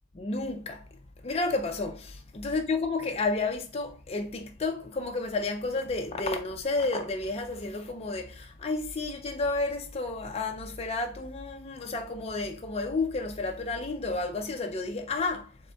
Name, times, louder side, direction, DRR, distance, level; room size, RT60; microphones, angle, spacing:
voice 1, 0.1-0.8 1.2-15.6, left 3 dB, 30° left, 0.5 m, -31 dB
4.0 x 3.6 x 3.3 m
head